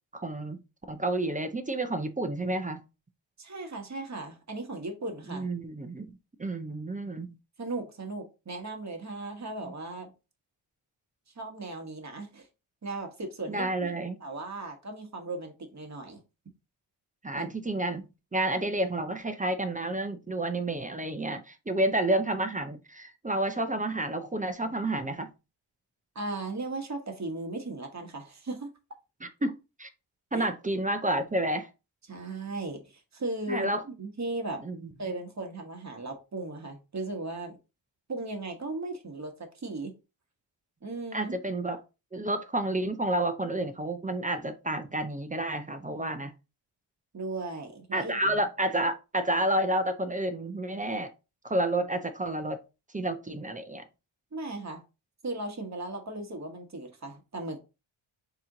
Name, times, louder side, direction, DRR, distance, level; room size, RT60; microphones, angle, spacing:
voice 1, 0.1-0.6 0.9-2.8 5.3-6.1 6.4-7.3 13.5-14.2 17.2-25.3 29.2-29.9 30.3-31.7 33.5-33.8 34.6-34.9 41.1-41.8 42.1-46.3 47.9-51.1 51.4-52.6 52.9-53.9, right 1 dB, 15° right, 0.5 m, -30 dB
voice 2, 3.4-5.5 7.6-10.1 11.3-12.5 12.8-13.9 14.2-16.2 17.3-17.4 26.1-28.7 30.3-30.5 32.1-34.6 35.0-37.6 38.1-39.9 40.8-41.4 47.1-48.4 54.3-54.8 55.2-57.6, right 2 dB, 35° right, 1.2 m, -37 dB
4.1 x 2.9 x 3.7 m
wide cardioid pair, 105°, 49 cm